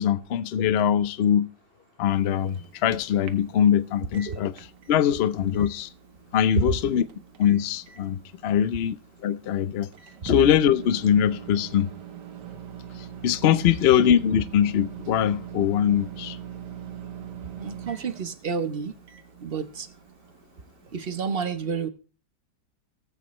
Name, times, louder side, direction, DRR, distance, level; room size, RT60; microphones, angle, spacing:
voice 1, 0.0-1.5 2.0-5.9 6.3-7.0 7.4-9.0 9.2-9.9 10.2-11.9 13.0-16.4, left 9 dB, 75° left, 0.5 m, -22 dB
Microwave oven, 2.0-21.4, right 9 dB, 80° right, 1.7 m, -43 dB
voice 2, 17.6-18.9 19.4-19.9 20.9-21.9, right 6 dB, 45° right, 0.9 m, -30 dB
18.0 x 8.3 x 3.1 m
omnidirectional pair, 1.8 m